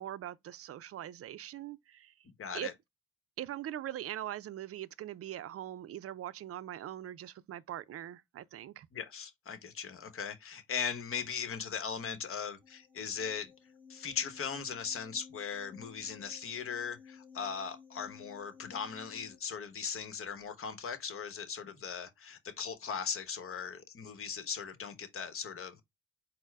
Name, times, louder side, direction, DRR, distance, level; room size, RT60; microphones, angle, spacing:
voice 1, 0.0-2.1 2.5-2.7 3.4-8.9, right 12 dB, 50° right, 0.4 m, -42 dB
voice 2, 2.4-2.7 8.9-13.5 13.9-25.8, left 6 dB, 45° left, 1.0 m, -39 dB
sound 1, 12.6-19.4, left 6 dB, 5° left, 1.1 m, -56 dB
4.4 x 2.1 x 4.6 m
cardioid pair, 90°, 30 cm